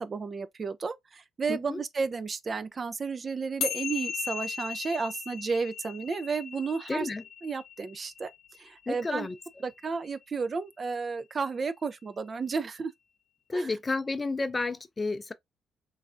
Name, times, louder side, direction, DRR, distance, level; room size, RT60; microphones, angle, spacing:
voice 1, 0.0-7.1 7.4-8.3 8.6-9.3 9.6-12.9 13.5-13.7, right 4 dB, 45° right, 0.3 m, -32 dB
voice 2, 1.5-1.8 6.9-7.2 8.9-9.4 13.5-15.3, left 3 dB, 30° left, 0.4 m, -31 dB
sound 1, 3.6-10.2, left 7 dB, 75° left, 0.6 m, -38 dB
3.1 x 2.4 x 2.4 m
supercardioid pair, 55°, 0 cm